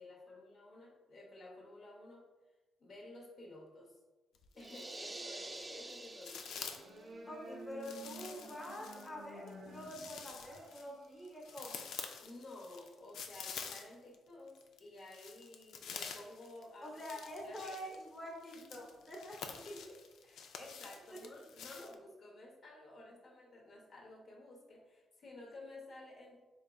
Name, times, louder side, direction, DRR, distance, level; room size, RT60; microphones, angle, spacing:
voice 1, 0.0-2.2 2.8-4.0 4.6-6.7 12.2-17.0 17.4-18.0 18.5-18.8 19.5-26.4, left 2 dB, 50° left, -2 dB, 0.7 m, -53 dB
sound 1, 4.3-5.2 5.5-7.0 7.8-14.2 14.5-21.9, left 6 dB, 80° left, 0.4 m, -48 dB
sound 2, 4.6-7.1, right 2 dB, 20° right, 0.3 m, -47 dB
sound 3, 6.4-11.6, right 1 dB, 85° right, 0.9 m, -52 dB
voice 2, 7.3-11.8 16.8-19.4, equal, 15° left, -2 dB, 0.9 m, -46 dB
3.8 x 3.4 x 2.3 m, 1.2 s
cardioid pair, 115°, 0 cm